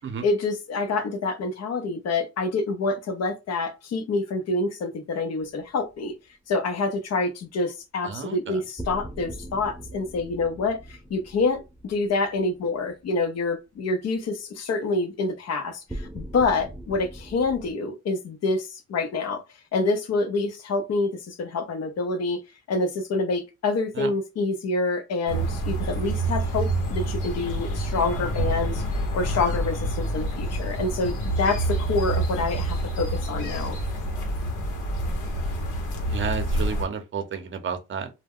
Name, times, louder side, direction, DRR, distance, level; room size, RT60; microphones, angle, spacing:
voice 1, 0.2-6.1 6.5-19.4 19.7-22.4 22.7-28.8 29.1-33.8, left 3 dB, 55° left, 0.7 m, -27 dB
sound 1, 5.4-6.0 8.8-13.1 15.9-17.7, right 1 dB, 5° right, 0.4 m, -40 dB
voice 2, 8.0-8.6 24.0-24.1 36.1-38.1, right 6 dB, 40° right, 0.7 m, -31 dB
sound 2, 25.3-36.9, right 1 dB, 90° left, 1.0 m, -27 dB
2.2 x 2.2 x 3.5 m
cardioid pair, 90°, 30 cm